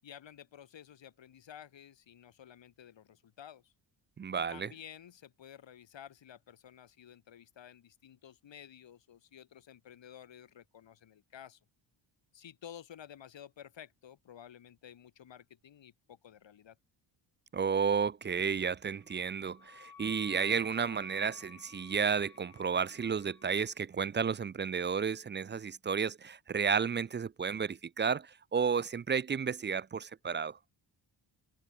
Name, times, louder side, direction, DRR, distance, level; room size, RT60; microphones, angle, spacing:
voice 1, 0.0-3.7 4.5-11.6 12.3-16.8, left 9 dB, 70° left, 7.3 m, -52 dB
voice 2, 4.2-4.7 17.5-30.6, right 6 dB, 25° right, 0.4 m, -32 dB
Wind instrument woodwind instrument, 19.0-23.7, left 7 dB, 50° left, 4.5 m, -56 dB
cardioid pair, 95°, 46 cm